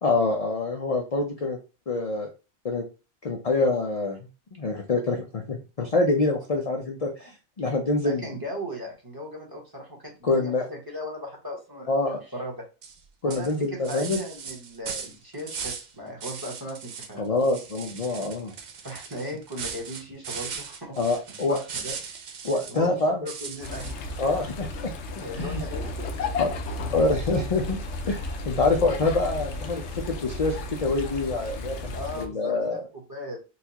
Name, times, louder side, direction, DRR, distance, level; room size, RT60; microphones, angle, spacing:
voice 1, 0.0-1.6 1.9-2.3 2.6-2.8 3.2-4.2 4.6-7.3 7.6-8.3 10.2-10.7 11.9-12.2 13.2-14.2 17.2-18.5 21.0-21.6 22.4-23.3 24.2-24.9 25.4-25.6 26.4-26.5 26.9-27.8 28.1-32.8, left 3 dB, 45° left, 1 dB, 0.5 m, -26 dB
voice 2, 8.0-12.6 13.2-16.8 17.1-17.2 18.8-21.0 21.3-22.0 22.7-23.9 25.1-26.7 31.9-33.4, equal, 20° right, -1 dB, 1.1 m, -37 dB
sound 1, 12.8-13.0 13.3-15.9 16.2-17.1 17.4-22.8 23.3-24.2, right 6 dB, 55° right, 0.5 m, -38 dB
sound 2, 23.6-32.3, left 2 dB, 80° left, 0.9 m, -33 dB
4.1 x 2.4 x 2.8 m, 0.31 s
omnidirectional pair, 1.2 m